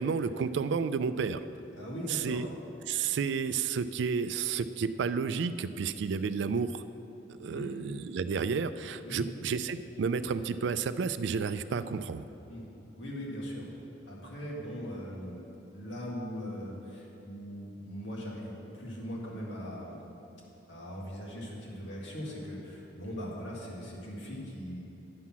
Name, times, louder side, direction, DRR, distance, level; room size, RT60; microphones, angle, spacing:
voice 1, 0.0-1.4 2.1-2.5 2.9-6.8 7.3-12.2, right 5 dB, 70° right, 13 dB, 0.3 m, -31 dB
voice 2, 1.8-2.4 7.5-7.7 9.0-9.2 12.5-12.7 13.0-13.7 14.1-15.4 15.7-20.0 20.7-24.8, equal, 90° left, -4 dB, 1.9 m, -40 dB
9.6 x 5.7 x 6.0 m, 3.0 s
head